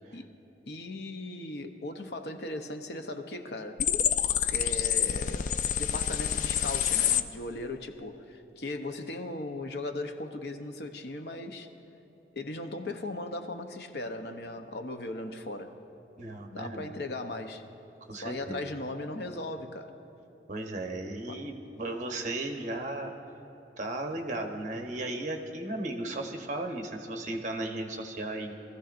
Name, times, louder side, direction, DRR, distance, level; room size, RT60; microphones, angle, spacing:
voice 1, 0.7-3.8 4.5-5.5 5.8-11.7 12.3-15.7 16.5-17.6 18.1-19.9 21.3-21.4, left 2 dB, 65° left, 6 dB, 0.8 m, -38 dB
sound 1, 3.8-7.2, left 9 dB, 45° left, 0.3 m, -27 dB
voice 2, 16.2-16.9 18.1-18.6 20.5-23.1 23.8-28.5, right 2 dB, 45° right, 3 dB, 1.0 m, -35 dB
22.5 x 14.5 x 2.5 m, 2.9 s
head